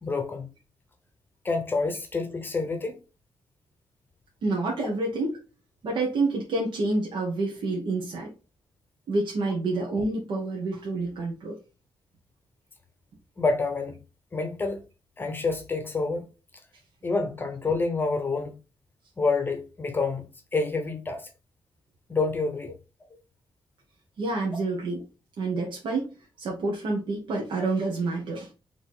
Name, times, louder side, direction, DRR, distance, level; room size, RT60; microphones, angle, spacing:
voice 1, 0.0-0.5 1.4-3.0 13.4-14.0 14.3-14.8 15.2-16.3 17.0-18.6 19.2-20.3 20.5-21.3 22.1-22.7, left 3 dB, 25° left, 0.7 m, -27 dB
voice 2, 4.4-5.4 5.8-8.3 9.1-11.6 24.2-25.0 25.4-28.5, right 2 dB, 70° right, 1.2 m, -28 dB
4.5 x 3.0 x 3.6 m
wide cardioid pair, 170°, 8 cm